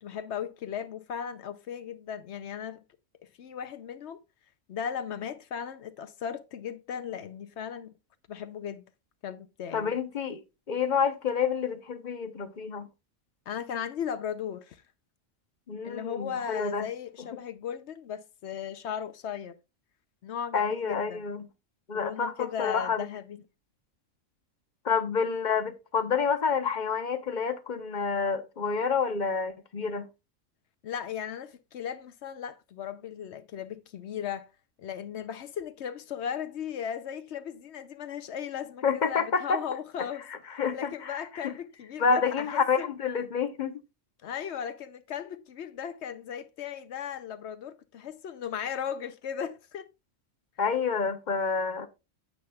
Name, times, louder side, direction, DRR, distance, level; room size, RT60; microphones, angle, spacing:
voice 1, 0.0-2.8 3.2-4.2 4.7-7.9 8.3-8.8 9.2-9.9 13.5-14.8 15.8-19.6 20.2-21.2 21.9-23.4 30.8-34.5 34.8-40.3 40.7-42.9 44.2-49.9, left 8 dB, 65° left, 0.9 m, -36 dB
voice 2, 9.7-10.4 10.7-12.9 15.7-16.9 20.5-21.5 21.9-23.0 24.8-30.1 38.8-39.6 40.3-41.5 42.0-43.8 50.6-51.9, left 5 dB, 40° left, 0.9 m, -28 dB
9.6 x 8.1 x 2.3 m
omnidirectional pair, 1.3 m